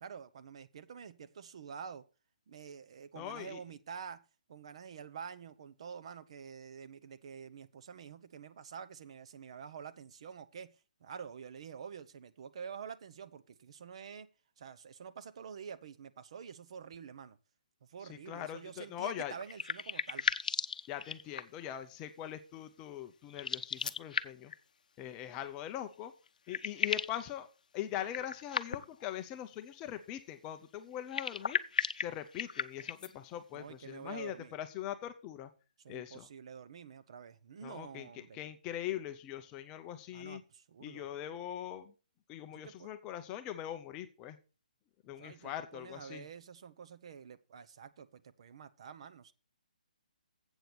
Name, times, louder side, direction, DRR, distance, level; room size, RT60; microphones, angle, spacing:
voice 1, 0.0-2.0 2.5-4.2 4.5-10.7 11.0-14.3 14.6-17.4 17.9-20.3 33.5-34.6 35.8-38.4 40.1-41.1 42.6-42.9 45.2-49.3, right 7 dB, 45° right, 0.7 m, -48 dB
voice 2, 3.1-3.6 18.0-19.3 20.9-24.5 25.0-26.1 26.5-27.5 27.7-31.6 32.0-35.5 35.9-36.3 37.6-40.4 40.8-41.9 42.3-44.4 45.0-46.3, left 11 dB, 15° left, 0.5 m, -42 dB
sound 1, 19.1-21.7 23.3-24.6 25.9-26.0 26.3-27.2 28.1-29.0 31.0-33.1, left 6 dB, 70° left, 0.6 m, -36 dB
8.0 x 6.9 x 5.9 m
hypercardioid pair, 170°, 5 cm